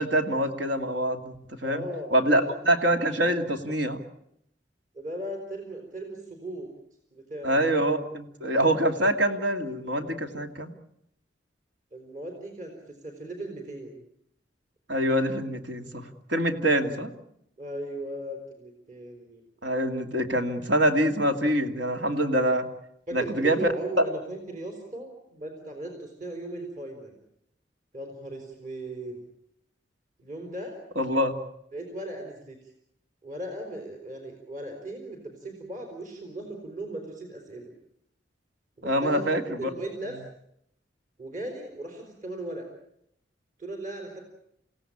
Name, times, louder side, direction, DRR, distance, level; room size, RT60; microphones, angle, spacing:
voice 1, 0.0-1.8 2.1-4.0 7.4-10.7 14.9-16.0 16.3-17.1 19.6-22.7 23.1-23.7 31.0-31.3 38.8-39.7, right 1 dB, 80° right, 6 dB, 2.5 m, -25 dB
voice 2, 1.6-2.5 4.9-6.7 7.1-7.6 11.9-14.0 17.6-19.4 23.1-27.1 27.9-29.1 30.2-30.8 31.7-32.6 33.2-37.7 38.8-39.3 39.6-40.2 41.2-42.7 43.6-44.2, right 1 dB, 45° right, 3 dB, 4.5 m, -37 dB
28.5 x 17.0 x 8.7 m, 0.75 s
head